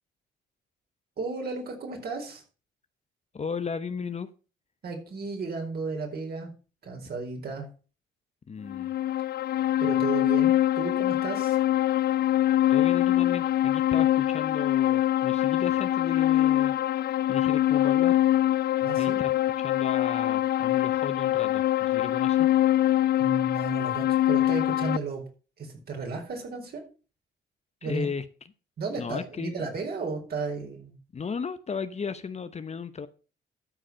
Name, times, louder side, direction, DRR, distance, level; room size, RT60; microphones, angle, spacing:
voice 1, 1.2-2.4 4.8-6.5 6.8-7.7 9.8-11.6 18.8-19.2 23.2-25.2 25.6-26.8 27.8-28.1 28.8-30.9, right 4 dB, 55° right, 4.5 m, -34 dB
voice 2, 3.3-4.3 8.5-8.9 12.7-16.7 17.3-18.2 19.0-22.5 27.8-28.3 28.9-29.7 31.1-33.1, left 5 dB, 35° left, 0.8 m, -35 dB
sound 1, 8.7-25.0, left 13 dB, 55° left, 0.4 m, -24 dB
13.0 x 5.0 x 6.3 m
cardioid pair, 90°, 20 cm